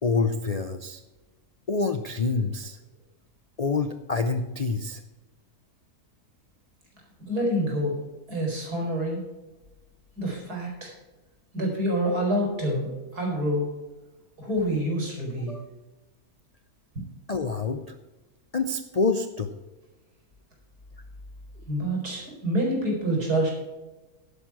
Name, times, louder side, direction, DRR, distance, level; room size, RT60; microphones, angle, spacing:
voice 1, 0.0-1.0 1.7-2.8 3.6-5.0 15.5-15.6 17.3-17.8 18.5-19.5, left 4 dB, 65° left, 8 dB, 0.3 m, -27 dB
voice 2, 7.2-8.0 8.3-9.3 10.2-10.9 11.5-13.7 14.4-15.5 21.7-23.5, equal, 80° right, 0 dB, 4.7 m, -27 dB
11.0 x 10.0 x 4.7 m, 1.1 s
omnidirectional pair, 1.7 m